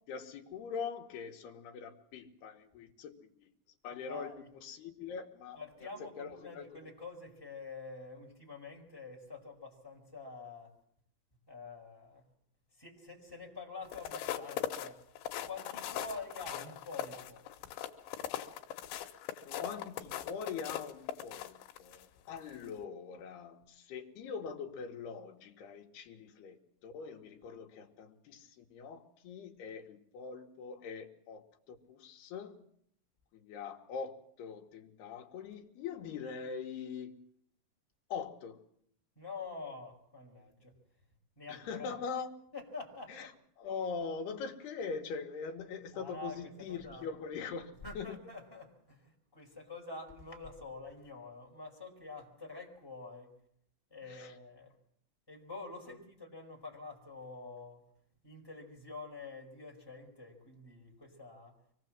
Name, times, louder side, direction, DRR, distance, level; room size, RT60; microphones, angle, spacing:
voice 1, 0.1-3.5 3.8-4.3 4.6-5.6 6.0-6.7 19.4-32.6 33.3-37.2 38.1-38.6 41.5-42.3 43.1-43.3 43.6-48.2 54.1-54.3 55.9-56.0, left 6 dB, 65° left, 2 dB, 3.4 m, -42 dB
voice 2, 3.9-4.5 5.5-10.7 11.5-12.2 12.7-15.0 15.4-17.5 39.1-40.7 41.4-41.9 42.5-43.3 45.9-47.1 47.8-53.4 53.9-54.7 55.3-57.8 58.2-61.5, left 3 dB, 5° left, -1 dB, 4.6 m, -47 dB
sound 1, 13.8-22.0 22.5-22.7, left 11 dB, 85° left, 3.6 m, -40 dB
24.5 x 19.5 x 7.6 m, 0.69 s
omnidirectional pair, 5.4 m